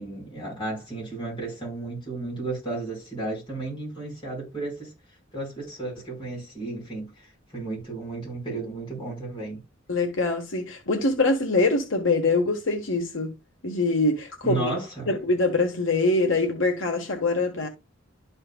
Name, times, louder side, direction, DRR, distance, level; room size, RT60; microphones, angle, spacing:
voice 1, 0.0-4.9 5.3-9.6 14.4-15.1, right 2 dB, 25° left, 4.8 m, -33 dB
voice 2, 9.9-13.3 13.6-14.7 15.1-17.7, left 3 dB, 75° left, 1.5 m, -24 dB
12.5 x 4.4 x 2.3 m
head